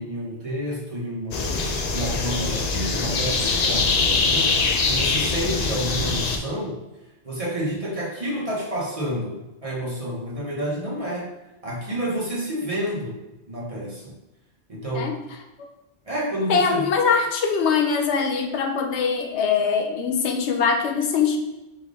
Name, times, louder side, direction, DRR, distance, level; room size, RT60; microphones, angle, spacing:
voice 1, 0.0-4.6 4.9-6.8 7.2-11.3 11.6-13.2 13.5-14.1 14.7-15.1 16.1-16.9, equal, 35° right, -5 dB, 1.0 m, -29 dB
sound 1, 1.3-6.4, left 4 dB, 55° left, 0.5 m, -23 dB
voice 2, 16.5-21.4, left 6 dB, 85° left, 3 dB, 0.9 m, -22 dB
5.1 x 3.5 x 2.5 m, 0.97 s
omnidirectional pair, 1.1 m